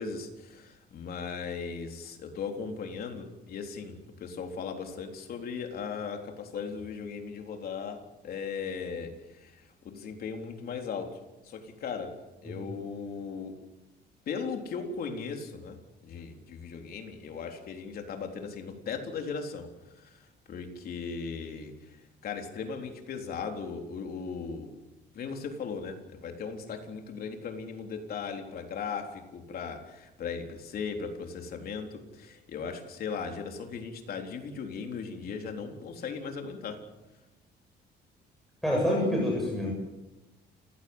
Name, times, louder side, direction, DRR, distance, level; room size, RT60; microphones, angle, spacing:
voice 1, 0.0-12.2 12.4-13.6 14.3-24.8 25.1-36.8, left 5 dB, 55° left, 4 dB, 3.8 m, -38 dB
voice 2, 38.6-39.7, left 1 dB, ahead, -3 dB, 7.7 m, -27 dB
29.5 x 16.0 x 8.0 m, 1.0 s
cardioid pair, 140°, 18 cm